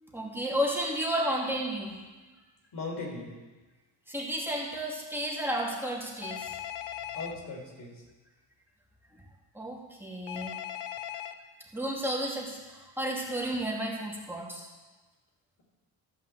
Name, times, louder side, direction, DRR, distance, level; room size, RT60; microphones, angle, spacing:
voice 1, 0.0-1.9 4.1-6.5 9.5-10.5 11.7-14.7, equal, 5° right, -3 dB, 2.5 m, -32 dB
voice 2, 2.7-3.3 7.1-8.0, left 3 dB, 60° left, 0 dB, 3.9 m, -38 dB
Telephone, 6.2-7.4 10.3-11.3, left 11 dB, 80° left, 0.8 m, -38 dB
14.0 x 5.5 x 7.9 m, 1.3 s
supercardioid pair, 75°, 42 cm